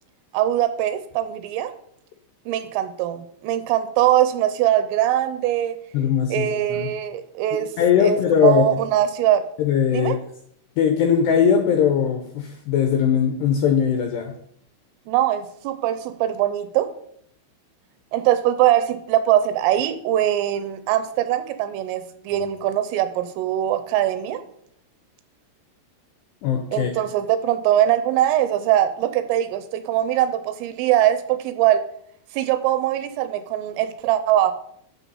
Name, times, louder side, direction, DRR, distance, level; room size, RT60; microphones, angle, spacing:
voice 1, 0.3-1.7 2.5-5.7 6.3-7.7 8.0-8.2 8.4-9.5 9.9-10.2 15.1-16.9 18.1-24.4 26.7-31.8 32.3-34.5, right 12 dB, 80° right, 11 dB, 3.3 m, -21 dB
voice 2, 5.9-6.9 7.8-8.8 9.6-10.2 10.8-14.3 26.4-26.9, left 8 dB, 80° left, 4 dB, 2.5 m, -20 dB
10.0 x 6.8 x 5.5 m, 0.68 s
omnidirectional pair, 5.9 m